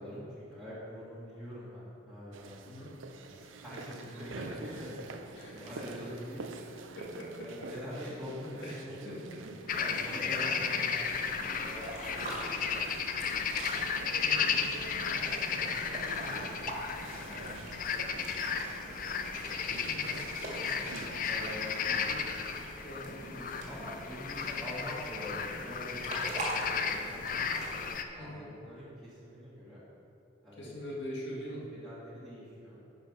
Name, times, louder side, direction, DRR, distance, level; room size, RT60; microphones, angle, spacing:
voice 1, 0.0-2.6 3.1-4.9 5.4-6.5 7.4-9.5 9.7-12.7 13.2-13.4 15.0-18.4 18.7-19.2 19.5-19.7 21.3-21.8 22.8-26.3 26.6-27.5 28.2-29.8 30.4-30.7 31.7-32.9, equal, ahead, -11 dB, 1.8 m, -45 dB
sound 1, 2.3-21.5, right 3 dB, 85° right, 0.6 m, -47 dB
voice 2, 2.6-3.0 5.4-5.9 6.6-6.7 6.9-7.5 8.0-8.2 8.5-9.4 9.7-10.5 14.2-14.8 19.9-20.8 21.8-22.4 22.8-23.1 28.2-28.5 30.6-31.7, equal, 60° left, -4 dB, 2.0 m, -44 dB
sound 2, 9.7-28.0, left 6 dB, 45° left, 0.5 m, -34 dB
sound 3, 11.0-27.9, right 1 dB, 35° right, 1.9 m, -44 dB
10.5 x 5.5 x 5.5 m, 2.8 s
head